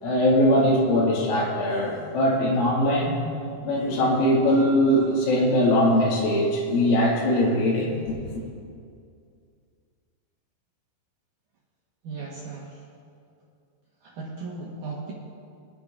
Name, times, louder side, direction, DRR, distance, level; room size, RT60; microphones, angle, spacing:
voice 1, 0.0-3.2 3.6-8.4, equal, 90° left, -5 dB, 4.6 m, -21 dB
voice 2, 12.0-12.8 14.0-15.1, right 4 dB, 65° right, -4 dB, 2.1 m, -36 dB
22.5 x 10.5 x 2.6 m, 2.4 s
omnidirectional pair, 5.4 m